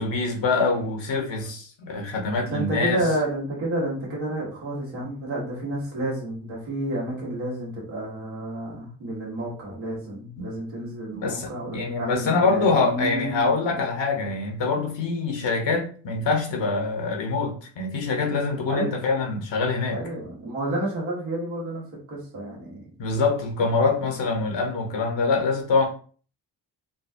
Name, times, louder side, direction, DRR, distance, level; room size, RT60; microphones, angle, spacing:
voice 1, 0.0-3.1 10.4-10.5 11.1-20.0 23.0-25.9, left 4 dB, 65° left, 1.1 m, -25 dB
voice 2, 2.4-13.8 18.7-19.0 19.9-21.8 22.1-22.9, right 1 dB, 85° right, 1.4 m, -30 dB
3.9 x 2.4 x 2.6 m
supercardioid pair, 40°, 47 cm